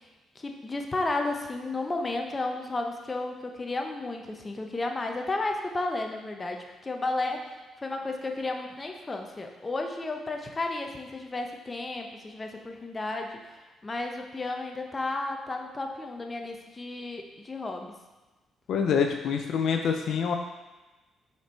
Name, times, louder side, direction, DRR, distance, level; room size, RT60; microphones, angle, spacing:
voice 1, 0.4-17.9, left 2 dB, 25° left, 3 dB, 0.8 m, -33 dB
voice 2, 18.7-20.4, left 6 dB, 70° left, 4 dB, 0.5 m, -26 dB
5.6 x 4.5 x 4.5 m, 1.1 s
cardioid pair, 90°, 0 cm